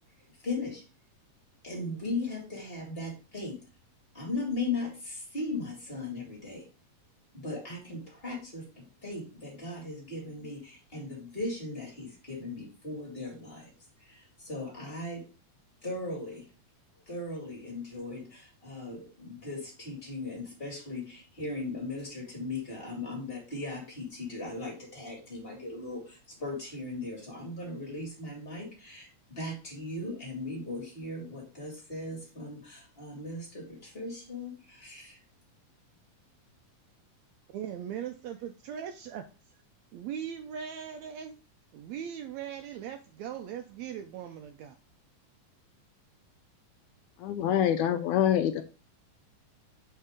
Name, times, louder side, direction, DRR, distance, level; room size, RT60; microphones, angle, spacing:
voice 1, 0.4-0.8 1.6-3.6 4.1-6.7 7.3-13.7 14.0-15.2 15.8-16.4 17.1-35.2, left 2 dB, 20° left, -2 dB, 2.0 m, -38 dB
voice 2, 37.5-39.2 39.9-41.4 41.7-44.7, right 9 dB, 85° right, 6 dB, 1.6 m, -39 dB
voice 3, 47.2-48.6, left 10 dB, 80° left, 8 dB, 1.7 m, -25 dB
6.6 x 4.2 x 3.5 m, 0.35 s
omnidirectional pair, 3.7 m